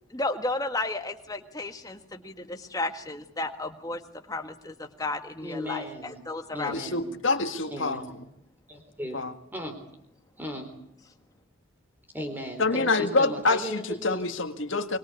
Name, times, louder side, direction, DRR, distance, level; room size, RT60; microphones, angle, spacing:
voice 1, 0.1-4.0 4.3-4.7 5.0-5.8 6.3-6.7, left 2 dB, 15° left, 6 dB, 1.6 m, -32 dB
voice 2, 5.4-6.2 6.5-7.0 7.7-8.1 8.7-9.2 9.5-9.8 10.4-10.7 12.1-14.2, equal, 10° right, 5 dB, 3.9 m, -36 dB
voice 3, 6.6-8.0 9.1-9.3 12.6-15.0, left 3 dB, 65° left, 6 dB, 1.8 m, -26 dB
25.5 x 22.5 x 8.4 m, 0.74 s
head